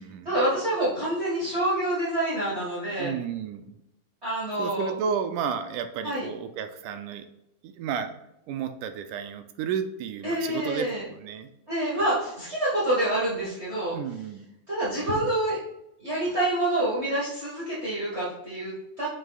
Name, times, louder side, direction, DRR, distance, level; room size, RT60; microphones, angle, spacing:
voice 1, 0.2-3.1 4.2-4.9 6.0-6.2 10.2-11.0 11.7-13.9 14.7-15.6 16.0-19.1, right 1 dB, 40° right, -8 dB, 0.9 m, -27 dB
voice 2, 3.0-3.8 4.6-7.3 7.6-8.2 8.5-11.5 13.9-14.5, right 7 dB, 80° right, 8 dB, 1.9 m, -32 dB
8.8 x 6.7 x 2.3 m, 0.86 s
omnidirectional pair, 3.9 m